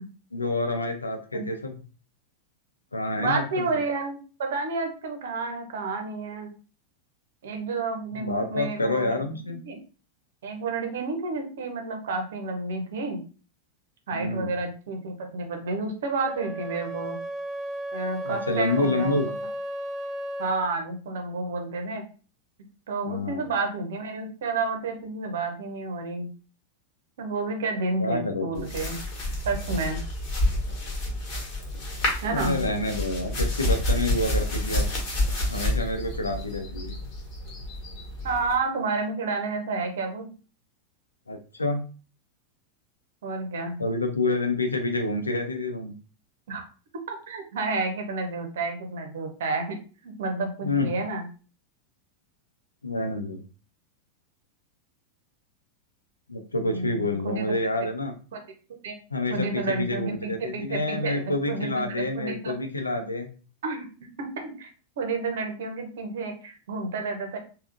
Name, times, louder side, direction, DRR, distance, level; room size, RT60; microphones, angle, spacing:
voice 1, 0.3-1.8 2.9-3.7 8.1-9.6 14.1-14.5 18.2-19.3 23.0-23.5 28.0-28.7 32.3-34.9 35.5-37.0 41.3-41.8 43.8-45.9 50.6-50.9 52.8-53.4 56.3-58.1 59.1-63.3, left 2 dB, 80° left, 5 dB, 0.6 m, -28 dB
voice 2, 3.2-6.5 7.4-9.2 9.7-9.8 10.4-13.2 14.1-17.2 17.9-19.2 20.4-22.0 22.9-26.3 27.2-29.0 29.5-30.0 32.2-32.6 38.2-40.3 43.2-43.8 46.5-46.6 47.1-49.8 50.0-51.2 56.7-57.5 58.3-58.4 58.8-58.9 59.3-62.5 63.6-63.9 64.2-64.7 65.0-67.4, right 3 dB, 60° right, 4 dB, 0.8 m, -30 dB
Wind instrument woodwind instrument, 16.2-20.7, right 1 dB, 20° right, 0.4 m, -34 dB
sound 1, 28.6-38.5, left 1 dB, 40° left, 1.4 m, -29 dB
3.4 x 2.3 x 2.5 m, 0.37 s
figure-of-eight pair, 90°, 0 cm